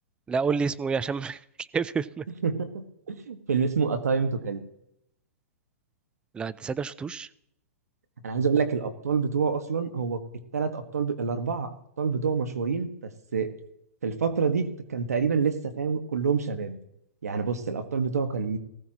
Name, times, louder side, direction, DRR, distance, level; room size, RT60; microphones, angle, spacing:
voice 1, 0.3-2.2 6.3-7.3, right 5 dB, 10° right, 17 dB, 0.4 m, -29 dB
voice 2, 2.4-4.6 8.2-10.2 10.5-13.5 14.0-16.8 17.2-18.6, right 5 dB, 90° right, 8 dB, 1.6 m, -27 dB
19.0 x 15.5 x 3.0 m, 0.78 s
hypercardioid pair, 135°, 8 cm